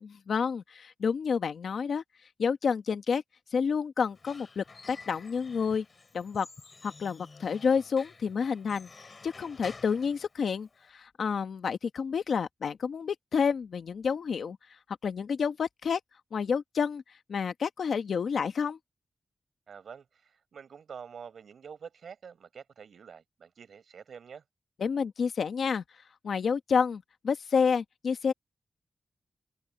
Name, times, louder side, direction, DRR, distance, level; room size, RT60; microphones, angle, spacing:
voice 1, 0.3-2.0 2.4-3.2 3.5-5.8 6.1-6.5 6.8-8.9 9.2-14.6 15.0-16.0 16.3-17.0 17.3-18.8 24.8-25.8 26.2-28.3, left 6 dB, 80° left, 1.3 m, -29 dB
Squeak / Wood, 4.0-10.9, left 4 dB, 35° left, 3.8 m, -51 dB
voice 2, 19.7-24.4, right 6 dB, 90° right, 5.1 m, -47 dB
wide cardioid pair, 175°, 0 cm